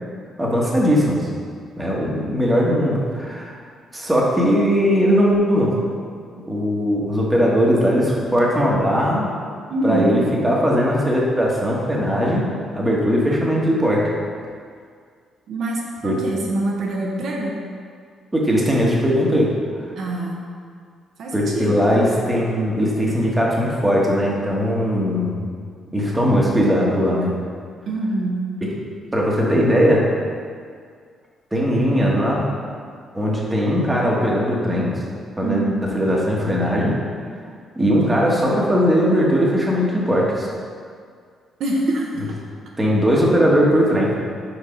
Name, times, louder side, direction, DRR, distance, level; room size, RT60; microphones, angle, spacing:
voice 1, 0.4-1.3 1.8-3.5 3.9-5.7 6.3-9.3 9.8-12.4 12.7-14.0 16.0-16.1 18.3-19.5 21.3-25.4 25.9-27.3 29.1-30.0 31.5-32.4 33.1-34.9 35.4-35.6 35.9-36.9 37.8-40.5 42.8-44.1, equal, 15° right, -4 dB, 1.3 m, -19 dB
voice 2, 9.7-10.1 15.5-17.5 20.0-20.4 21.2-21.8 27.9-28.4 35.4-35.8 41.6-42.2, right 2 dB, 70° right, -2 dB, 0.8 m, -24 dB
4.9 x 4.6 x 5.0 m, 2.1 s
cardioid pair, 90°, 0 cm